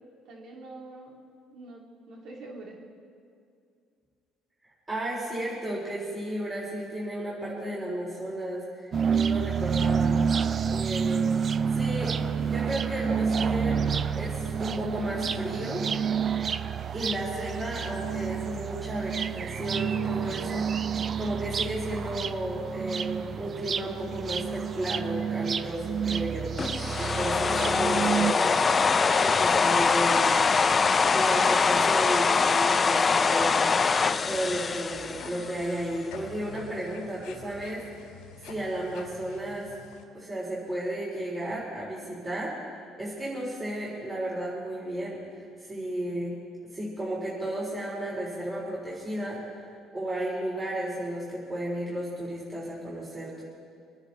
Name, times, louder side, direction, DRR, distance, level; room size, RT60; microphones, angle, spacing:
voice 1, 0.2-1.2 1.5-2.8, right 2 dB, 65° right, -1 dB, 3.1 m, -45 dB
voice 2, 4.9-10.2 10.7-11.3 11.7-13.8 14.1-15.8 16.9-26.5 27.0-28.6 29.2-30.3 31.1-33.7 34.2-37.8 38.4-39.7 40.1-42.5 43.0-46.3 46.7-49.4 49.9-53.4, right 1 dB, 20° right, -7 dB, 3.9 m, -33 dB
sound 1, 8.9-28.3, right 6 dB, 40° right, 0.5 m, -29 dB
sound 2, 26.6-35.8, left 5 dB, 30° left, 0.5 m, -23 dB
sound 3, 34.9-40.0, left 4 dB, 85° left, 1.9 m, -48 dB
24.5 x 9.9 x 4.2 m, 2.3 s
cardioid pair, 105°, 0 cm